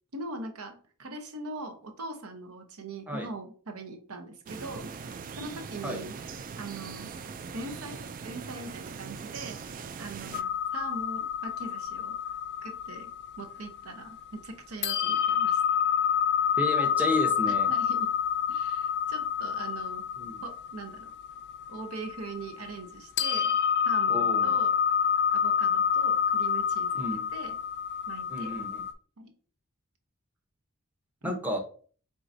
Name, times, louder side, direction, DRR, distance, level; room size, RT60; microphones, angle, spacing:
voice 1, 0.1-4.9 5.4-6.2 6.5-7.1 7.5-12.1 12.6-13.1 13.4-15.6 17.5-18.1 18.5-20.0 20.4-21.1 21.7-23.6 23.8-24.7 25.3-27.6 28.1-28.6 29.2-29.3 31.2-31.3, right 2 dB, 70° right, 5 dB, 0.9 m, -41 dB
sound 1, 4.5-10.4, right 5 dB, 40° right, 0.3 m, -41 dB
sound 2, 10.3-14.4 14.8-22.9 23.2-28.9, left 8 dB, 50° left, 0.4 m, -28 dB
voice 2, 16.6-17.7 20.2-20.4 24.1-24.5 26.9-27.3 28.3-28.8 31.2-31.6, left 1 dB, 5° right, 3 dB, 0.8 m, -32 dB
4.6 x 3.8 x 2.6 m, 0.43 s
head